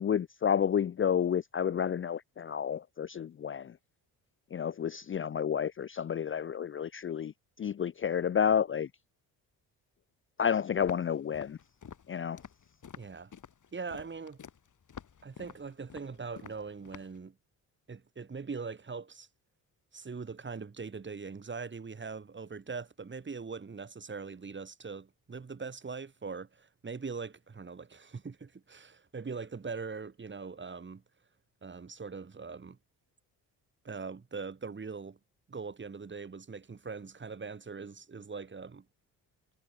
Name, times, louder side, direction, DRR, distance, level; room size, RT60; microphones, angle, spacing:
voice 1, 0.0-3.7 4.5-7.3 7.6-8.9 10.4-11.6 12.1-12.4, left 8 dB, 30° left, 0.5 m, -30 dB
Walk footsteps, 10.8-17.2, left 7 dB, 50° left, 3.2 m, -49 dB
voice 2, 13.0-13.3 13.7-14.4 15.2-17.4 17.9-19.3 19.9-31.0 31.6-32.8 33.8-35.2 35.5-38.8, right 5 dB, 30° right, 1.8 m, -41 dB
supercardioid pair, 60°, 40 cm